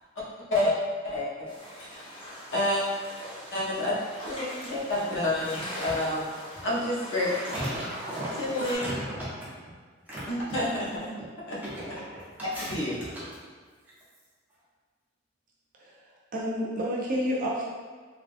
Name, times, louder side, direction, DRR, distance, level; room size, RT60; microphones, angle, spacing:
voice 1, 1.0-1.5 1.8-2.0 2.5-2.8 3.5-4.0 4.2-6.3 6.6-7.3 8.4-8.9 10.3-11.1 11.5-11.6 12.4-12.9, left 1 dB, 65° left, -6 dB, 0.8 m, -29 dB
sound 1, 1.5-8.7, equal, 25° left, 0.8 m, -41 dB
voice 2, 7.4-9.3 10.1-10.2 11.6-12.2 12.5-12.7 13.1-13.2, right 1 dB, 10° right, -12 dB, 1.2 m, -35 dB
voice 3, 15.8-17.6, equal, 45° right, -5 dB, 0.5 m, -30 dB
3.5 x 2.4 x 2.5 m, 1.5 s
head